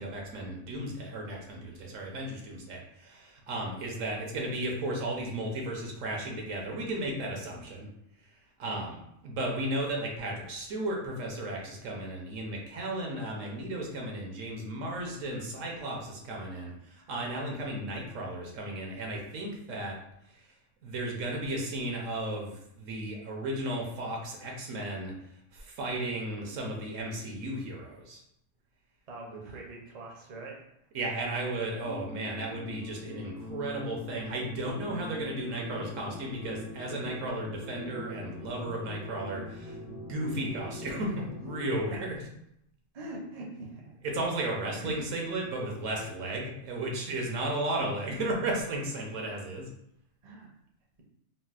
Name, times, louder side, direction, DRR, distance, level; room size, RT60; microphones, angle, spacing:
voice 1, 0.0-7.9 8.6-20.0 20.3-20.4 20.8-25.1 25.5-28.2 30.9-42.1 44.1-49.7, right 1 dB, 75° right, 0 dB, 1.0 m, -34 dB
voice 2, 29.1-30.6 31.7-31.8 41.7-42.0 42.9-44.0 44.8-45.0 50.2-50.5, right 2 dB, 45° right, -1 dB, 0.5 m, -42 dB
sound 1, 31.8-41.8, left 2 dB, 55° left, 1.2 m, -42 dB
3.9 x 2.0 x 2.3 m, 0.78 s
omnidirectional pair, 1.3 m